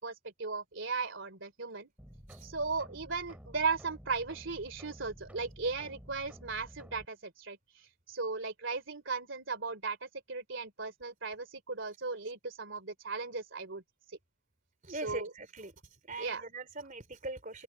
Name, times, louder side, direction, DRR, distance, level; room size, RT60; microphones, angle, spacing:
voice 1, 0.0-1.9 2.4-13.8 15.0-15.3 16.2-16.4, right 4 dB, 60° right, 3.1 m, -37 dB
sound 1, 2.0-7.1, equal, 5° right, 4.3 m, -52 dB
voice 2, 14.8-15.7 16.0-17.6, right 2 dB, 35° right, 3.6 m, -41 dB
open air
head